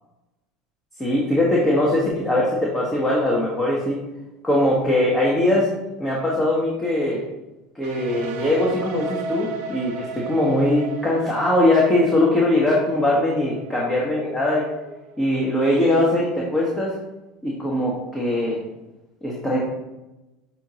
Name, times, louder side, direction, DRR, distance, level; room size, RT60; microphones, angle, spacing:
voice 1, 1.0-4.0 4.4-5.7 6.0-7.2 7.7-14.6 15.2-16.9 17.4-18.6 19.2-19.6, left 1 dB, 15° left, -4 dB, 1.1 m, -21 dB
sound 1, 7.8-15.6, right 4 dB, 65° right, 0.4 m, -36 dB
6.1 x 3.0 x 2.8 m, 1.0 s
hypercardioid pair, 85°, 0 cm